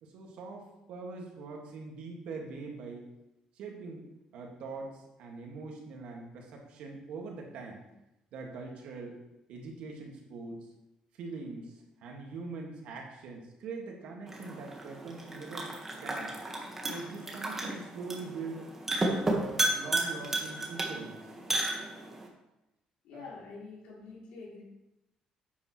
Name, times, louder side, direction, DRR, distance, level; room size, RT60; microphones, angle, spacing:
voice 1, 0.0-3.1 3.6-4.1 4.3-7.8 8.3-9.2 9.5-10.7 11.1-15.7 16.0-16.3 16.8-18.7 19.1-21.2 23.1-23.3, right 4 dB, 75° right, 0 dB, 2.0 m, -43 dB
sound 1, 14.3-22.3, right 2 dB, 15° right, 1.5 m, -33 dB
voice 2, 23.0-24.6, left 4 dB, 90° left, -5 dB, 3.2 m, -46 dB
10.0 x 8.6 x 3.2 m, 0.92 s
cardioid pair, 145°, 2 cm